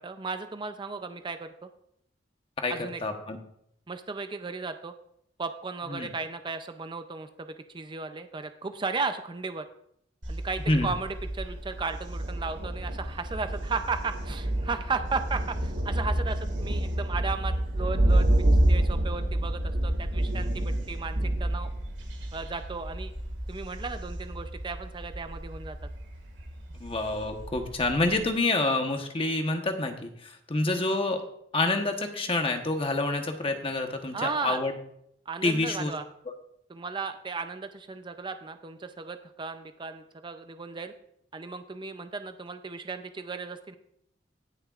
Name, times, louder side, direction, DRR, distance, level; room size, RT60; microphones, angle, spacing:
voice 1, 0.0-1.7 2.7-3.0 3.9-4.9 5.4-9.7 10.3-18.3 18.7-21.7 22.3-23.1 23.5-25.8 34.1-34.6 35.3-36.0 36.7-40.9 41.3-43.8, right 4 dB, 25° right, 9 dB, 0.5 m, -35 dB
voice 2, 3.0-3.4 5.9-6.1 10.7-10.9 26.8-31.2 31.5-34.7 35.4-35.9, left 2 dB, 30° left, 5 dB, 1.1 m, -27 dB
Thunder, 10.2-28.3, right 1 dB, 85° right, 1.9 m, -29 dB
19.5 x 6.5 x 2.4 m, 0.72 s
head